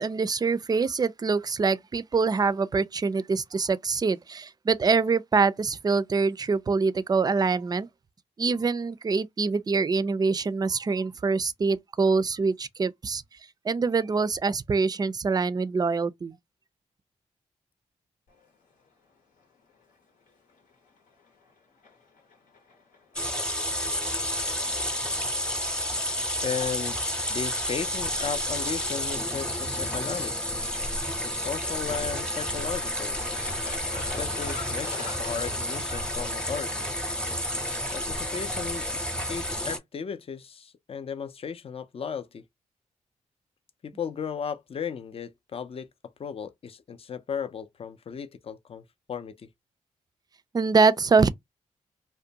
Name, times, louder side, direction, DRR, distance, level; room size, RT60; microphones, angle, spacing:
voice 1, 0.0-7.9 8.4-13.2 13.6-16.4 50.5-51.3, right 4 dB, 30° right, 0.3 m, -24 dB
sound 1, 18.3-37.0, left 4 dB, 80° left, 0.9 m, -48 dB
sound 2, 23.1-39.8, equal, 5° left, 0.8 m, -30 dB
voice 2, 26.4-27.0 27.3-30.3 31.2-33.2 34.0-36.9 37.9-42.4 43.8-45.9 46.2-49.5, left 7 dB, 45° left, 0.4 m, -35 dB
2.5 x 2.2 x 2.7 m
supercardioid pair, 45°, 14 cm